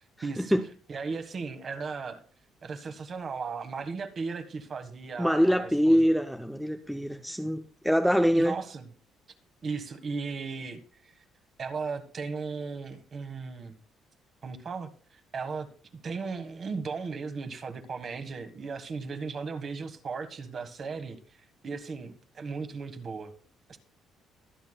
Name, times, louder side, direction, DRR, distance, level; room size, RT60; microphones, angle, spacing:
voice 1, 0.2-0.6 0.9-2.2 2.6-6.1 8.3-8.9 9.6-11.2 11.6-13.8 14.4-15.7 16.0-23.3 23.7-23.8, right 4 dB, 40° right, 1.5 m, -36 dB
voice 2, 5.2-8.6, equal, ahead, 0.6 m, -24 dB
23.0 x 8.3 x 2.3 m
cardioid pair, 130°, 0 cm